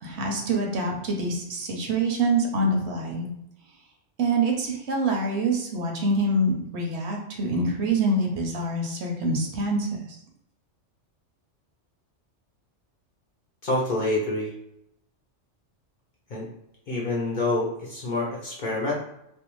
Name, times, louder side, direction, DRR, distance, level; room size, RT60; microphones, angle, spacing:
voice 1, 0.0-3.3 4.2-10.2, right 2 dB, 70° right, 1 dB, 0.8 m, -25 dB
voice 2, 13.6-14.5 16.3-16.5 16.9-18.9, left 2 dB, 55° left, -4 dB, 0.6 m, -27 dB
2.6 x 2.1 x 2.9 m, 0.81 s
omnidirectional pair, 1.2 m